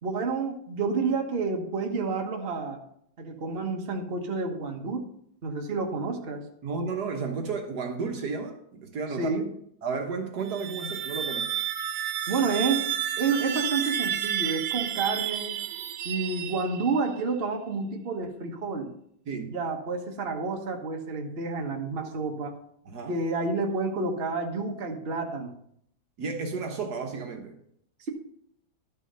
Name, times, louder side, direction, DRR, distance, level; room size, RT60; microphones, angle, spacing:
voice 1, 0.0-2.8 3.2-5.1 5.4-6.4 9.2-9.4 12.3-12.9 13.2-15.6 16.0-18.9 19.5-22.5 23.1-25.5, right 4 dB, 35° right, 1.4 m, -29 dB
voice 2, 6.6-9.3 9.8-11.5 19.3-19.5 22.8-23.1 26.2-27.6, right 4 dB, 60° right, 1.6 m, -32 dB
sound 1, 10.4-17.0, right 10 dB, 85° right, 1.4 m, -31 dB
12.0 x 6.3 x 5.6 m
omnidirectional pair, 2.0 m